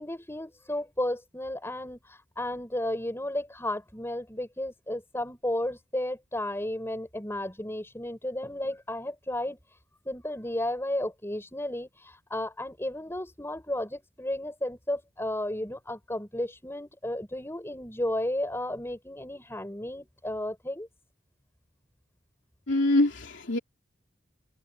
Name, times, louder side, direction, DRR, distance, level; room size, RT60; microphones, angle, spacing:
voice 1, 0.0-9.6 10.1-20.9, left 1 dB, 15° left, 7.1 m, -33 dB
voice 2, 22.7-23.6, left 1 dB, 65° left, 3.4 m, -24 dB
head